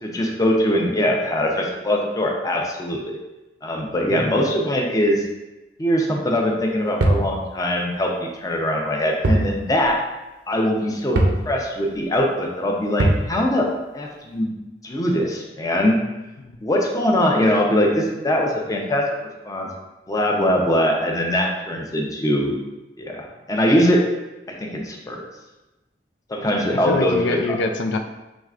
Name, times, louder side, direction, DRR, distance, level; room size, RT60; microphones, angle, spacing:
voice 1, 0.0-3.2 3.6-5.2 5.8-10.0 10.5-13.7 13.9-14.5 14.8-16.0 16.6-19.1 19.4-19.7 20.1-22.6 23.0-24.0 24.6-25.2 26.3-27.4, equal, 20° left, 0 dB, 0.6 m, -22 dB
voice 2, 4.1-4.4 16.4-16.6 26.7-28.0, left 3 dB, 90° left, 4 dB, 0.4 m, -25 dB
sound 1, 7.0-7.3 9.2-9.5 9.8-9.9 11.2-11.4 13.0-13.3, right 1 dB, 65° right, 0.6 m, -19 dB
6.2 x 3.2 x 2.4 m, 1.0 s
head